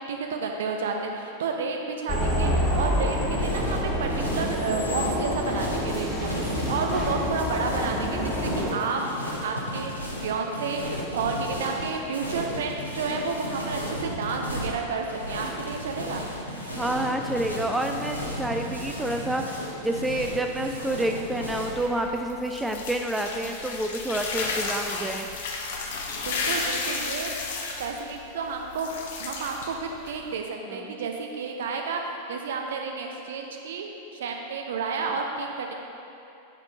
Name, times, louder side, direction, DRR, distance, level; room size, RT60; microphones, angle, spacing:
voice 1, 0.0-16.2 26.3-27.3 27.8-35.7, right 4 dB, 60° right, 3 dB, 0.6 m, -31 dB
sound 1, 2.1-8.7, equal, 15° left, 1.3 m, -27 dB
sound 2, 3.3-21.8, equal, 90° right, 0.9 m, -34 dB
voice 2, 16.8-25.3 30.7-30.9, right 1 dB, 5° right, 4 dB, 0.3 m, -28 dB
sound 3, 21.2-30.3, left 4 dB, 60° left, 0.7 m, -33 dB
9.7 x 3.6 x 3.6 m, 2.9 s
figure-of-eight pair, 90°, 0 cm